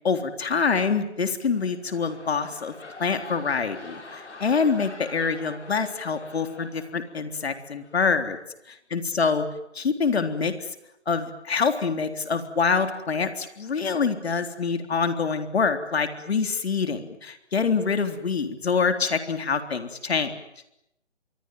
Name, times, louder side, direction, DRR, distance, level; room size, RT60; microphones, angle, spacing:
voice 1, 0.0-2.7 3.0-8.4 8.7-9.4 9.8-10.7 11.1-20.3, left 5 dB, 60° left, 7 dB, 3.7 m, -25 dB
sound 1, 1.5-7.4 7.8-8.1, left 3 dB, 75° left, 7.3 m, -45 dB
27.0 x 23.5 x 9.2 m, 0.82 s
figure-of-eight pair, 150°, 35 cm